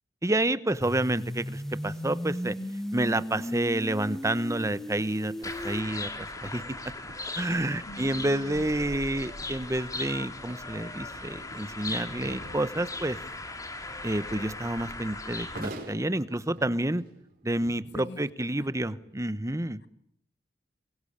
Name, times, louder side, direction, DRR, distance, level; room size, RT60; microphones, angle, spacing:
voice 1, 0.2-2.6 2.9-6.8 7.3-13.2 14.0-17.0 17.4-19.8, right 1 dB, 15° right, 15 dB, 1.0 m, -29 dB
sound 1, 0.8-5.8, equal, ahead, 1.6 m, -36 dB
sound 2, 2.8-19.2, right 1 dB, 55° right, 5.3 m, -50 dB
sound 3, 5.4-15.7, left 2 dB, 20° left, 2.5 m, -38 dB
voice 2, 7.9-8.7 17.9-18.2 18.6-18.7, left 2 dB, 65° left, 11 dB, 1.8 m, -43 dB
23.5 x 23.5 x 8.8 m, 0.68 s
head